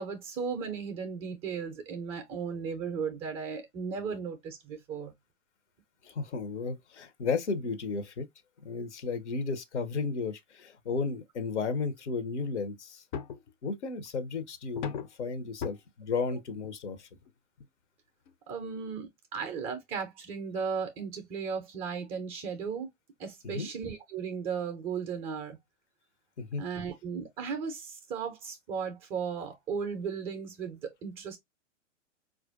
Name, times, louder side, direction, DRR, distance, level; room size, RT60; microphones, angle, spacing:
voice 1, 0.0-5.1 18.5-22.9 23.2-25.6 26.6-31.4, right 6 dB, 15° right, 0.4 m, -36 dB
voice 2, 6.0-8.3 8.6-13.0 13.6-17.1 23.4-23.7 26.4-26.6, left 4 dB, 65° left, 0.9 m, -34 dB
sound 1, 13.1-13.5 14.8-15.2 15.6-15.8 16.6-16.7 17.2-17.3 17.6-17.7 18.3-18.4, left 7 dB, 40° left, 0.5 m, -36 dB
4.3 x 2.5 x 2.4 m
figure-of-eight pair, 110°, 37 cm